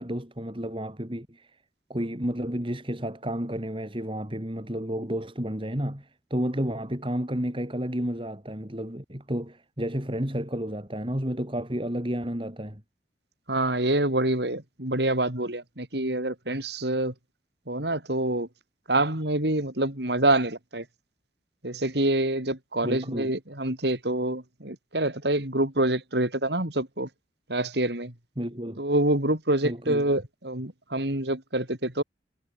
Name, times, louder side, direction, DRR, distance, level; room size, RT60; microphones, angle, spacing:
voice 1, 0.0-1.5 1.9-12.8 22.8-23.3 28.4-28.8 29.6-30.1, equal, 30° right, 3.7 m, -31 dB
voice 2, 13.5-17.1 17.7-18.5 18.9-20.8 21.6-27.1 27.5-28.1 28.8-32.0, right 1 dB, 65° right, 4.7 m, -26 dB
head